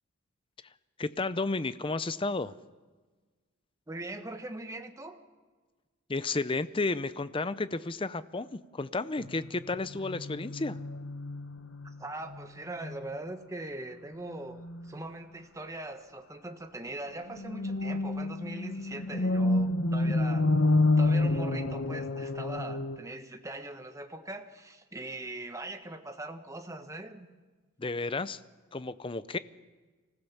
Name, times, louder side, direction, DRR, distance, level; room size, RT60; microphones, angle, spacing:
voice 1, 1.0-2.5 6.1-10.8 27.8-28.4 28.7-29.4, left 3 dB, 25° left, 15 dB, 0.6 m, -32 dB
voice 2, 3.9-5.2 12.0-20.5 21.0-27.3, right 2 dB, 15° right, 6 dB, 1.2 m, -41 dB
sound 1, 9.2-12.0 12.3-12.5 12.8-13.2 14.5-14.9 17.3-23.0, left 2 dB, 65° left, 1.2 m, -29 dB
25.0 x 15.5 x 7.2 m, 1.3 s
head